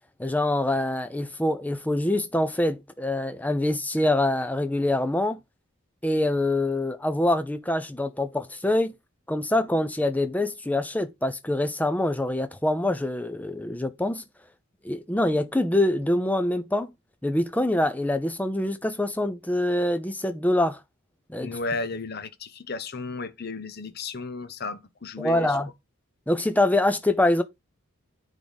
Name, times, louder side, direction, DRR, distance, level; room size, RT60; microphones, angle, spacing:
voice 1, 0.2-5.4 6.0-8.9 9.3-14.2 14.8-16.9 17.2-20.8 21.3-21.6 25.2-25.7 26.3-27.4, left 1 dB, 5° left, 0.5 m, -25 dB
voice 2, 21.4-25.6, left 3 dB, 45° left, 0.8 m, -34 dB
9.4 x 3.7 x 4.0 m
head